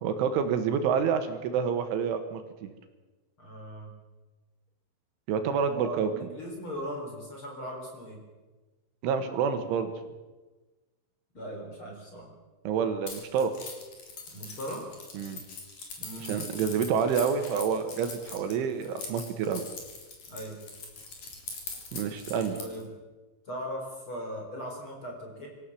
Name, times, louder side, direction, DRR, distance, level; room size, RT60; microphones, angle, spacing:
voice 1, 0.0-2.7 5.3-6.1 9.0-9.9 12.7-13.5 15.2-15.4 16.2-19.6 21.9-22.6, right 7 dB, 80° right, 8 dB, 3.7 m, -28 dB
voice 2, 3.4-3.9 5.7-8.2 11.3-12.3 14.3-14.8 16.0-16.4 20.3-20.6 22.6-22.9 23.5-25.5, equal, 25° left, 0 dB, 4.6 m, -39 dB
Keys jangling, 13.1-22.8, left 4 dB, 45° left, 4.7 m, -42 dB
25.5 x 14.5 x 7.5 m, 1.2 s
omnidirectional pair, 5.8 m